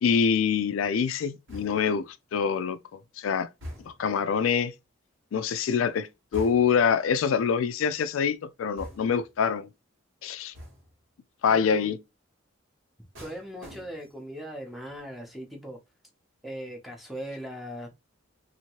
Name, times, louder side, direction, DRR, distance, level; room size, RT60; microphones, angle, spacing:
voice 1, 0.0-2.8 3.2-3.5 3.9-4.7 5.3-9.7 10.2-10.5 11.4-12.0, left 6 dB, 85° left, 0.3 m, -25 dB
sound 1, 1.5-2.1 3.6-4.2 6.3-6.9 8.8-9.3 10.5-11.0 13.1-14.3 14.6-15.0, equal, 75° right, 1.4 m, -44 dB
voice 2, 11.5-11.9 13.2-15.8 16.4-18.0, equal, ahead, 0.6 m, -39 dB
2.8 x 2.6 x 2.9 m
head